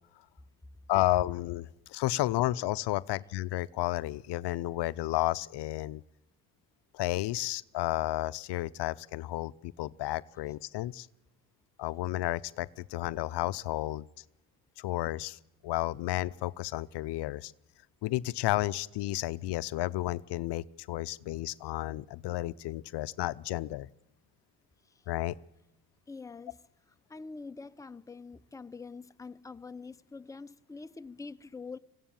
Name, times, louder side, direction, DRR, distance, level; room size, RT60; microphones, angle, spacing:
voice 1, 0.9-6.0 6.9-11.1 11.8-14.0 14.8-17.5 18.0-23.9 25.1-25.3, left 16 dB, 65° left, 0.7 m, -32 dB
voice 2, 26.1-26.7 27.1-31.8, left 4 dB, 5° left, 0.7 m, -45 dB
19.5 x 16.0 x 9.0 m
hypercardioid pair, 60°, 45 cm